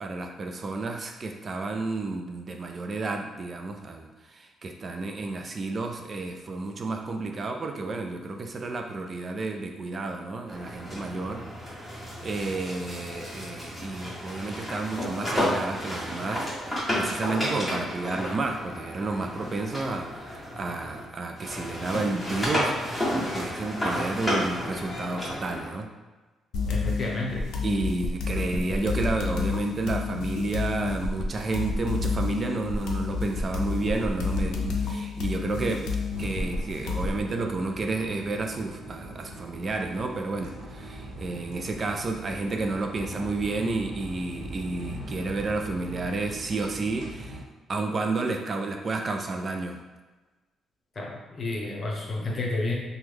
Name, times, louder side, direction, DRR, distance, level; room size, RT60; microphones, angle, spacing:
voice 1, 0.0-11.4 11.9-22.8 23.1-25.9 27.6-35.9 36.2-47.4 47.7-49.8, right 3 dB, 40° right, 4 dB, 0.3 m, -31 dB
sound 1, 10.5-21.0 21.4-25.7, equal, 5° left, 1.4 m, -32 dB
sound 2, 26.5-37.2, left 4 dB, 80° left, 0.5 m, -30 dB
voice 2, 26.7-27.5 51.0-52.7, left 2 dB, 40° left, -1 dB, 0.8 m, -31 dB
sound 3, 36.1-47.4, right 1 dB, 80° right, 0.8 m, -41 dB
3.0 x 2.2 x 3.4 m, 1.2 s
cardioid pair, 90°, 0 cm